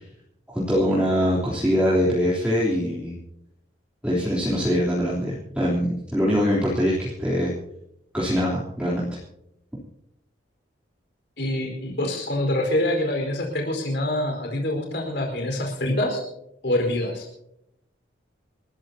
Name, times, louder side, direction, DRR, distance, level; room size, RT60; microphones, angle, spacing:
voice 1, 0.5-3.1 4.0-7.5 8.1-9.1, equal, 5° right, -7 dB, 3.5 m, -23 dB
voice 2, 11.4-16.2 16.6-17.3, left 1 dB, 65° left, 2 dB, 4.7 m, -25 dB
28.5 x 13.5 x 2.8 m, 0.78 s
head